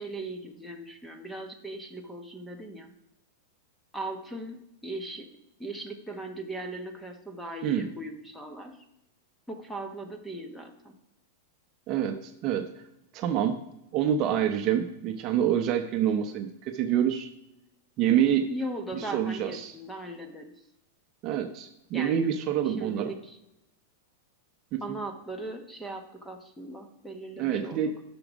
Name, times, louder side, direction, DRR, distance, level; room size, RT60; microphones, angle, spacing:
voice 1, 0.0-2.9 3.9-5.3 5.6-8.8 9.5-11.0 18.5-20.5 21.9-22.2 22.6-23.4 24.8-27.9, right 1 dB, 5° left, 5 dB, 1.0 m, -38 dB
voice 2, 11.9-12.7 13.1-13.6 13.9-17.3 18.0-18.5 18.9-19.7 21.2-23.1 24.7-25.0 27.4-27.9, right 9 dB, 30° right, 6 dB, 0.7 m, -27 dB
12.5 x 6.2 x 5.1 m, 0.88 s
supercardioid pair, 160°, 0 cm